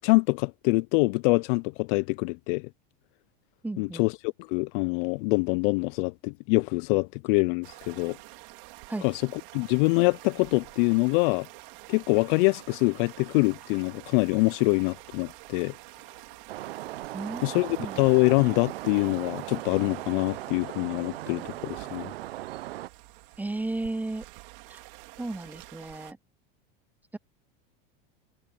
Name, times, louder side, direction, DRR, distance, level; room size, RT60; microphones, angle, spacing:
voice 1, 0.0-2.7 3.8-8.2 9.0-11.5 11.9-15.7 17.4-22.1, left 29 dB, 60° left, 0.5 m, -25 dB
voice 2, 3.6-4.1 8.9-9.0 17.1-17.5 17.8-18.0 23.4-24.2 24.7-24.8 25.2-26.2, right 2 dB, 5° right, 0.4 m, -34 dB
sound 1, 7.6-26.1, right 27 dB, 65° right, 3.8 m, -48 dB
sound 2, 16.5-22.9, right 16 dB, 85° right, 0.9 m, -38 dB
supercardioid pair, 110°, 29 cm